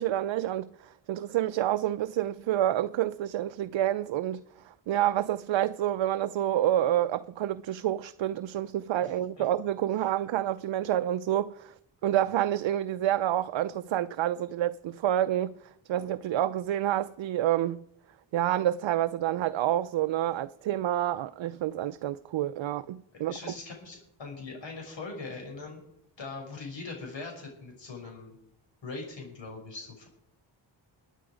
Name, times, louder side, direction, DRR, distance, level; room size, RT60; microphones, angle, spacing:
voice 1, 0.0-11.7 12.0-15.5 15.9-17.8 18.3-23.5, right 12 dB, 75° right, 0.6 m, -28 dB
voice 2, 23.3-25.8 26.2-28.4 28.8-30.1, left 3 dB, 70° left, 6.6 m, -41 dB
22.5 x 9.1 x 5.1 m
wide cardioid pair, 140°, 46 cm